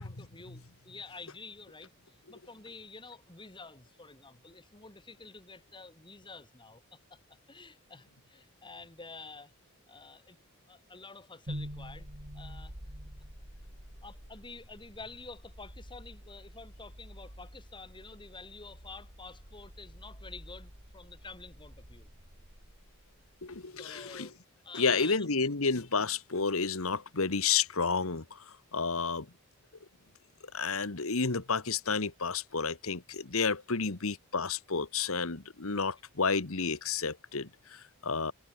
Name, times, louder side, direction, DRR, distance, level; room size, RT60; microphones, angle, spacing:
voice 1, 0.0-7.2 7.5-9.5 9.9-10.4 10.7-12.1 12.3-12.7 14.0-22.1 23.8-24.3 24.6-25.3 33.8-33.9 35.7-35.8, left 4 dB, 20° left, 3.1 m, -49 dB
sound 1, 11.5-23.5, equal, 45° right, 6.8 m, -48 dB
voice 2, 23.4-24.3 24.7-29.3 30.5-38.3, left 5 dB, 65° left, 1.5 m, -31 dB
head